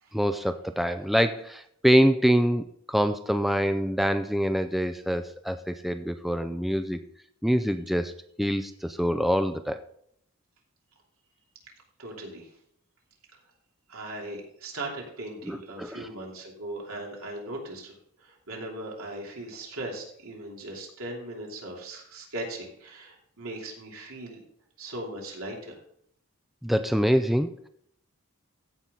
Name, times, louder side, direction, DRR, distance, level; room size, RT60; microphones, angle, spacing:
voice 1, 0.1-7.0 7.4-8.1 8.4-9.8 15.5-16.1 26.6-27.7, equal, ahead, 9 dB, 0.3 m, -25 dB
voice 2, 12.0-12.5 13.9-17.9 18.2-24.4 24.8-25.8, right 1 dB, 75° right, -1 dB, 3.1 m, -38 dB
15.5 x 5.8 x 3.8 m, 0.67 s
head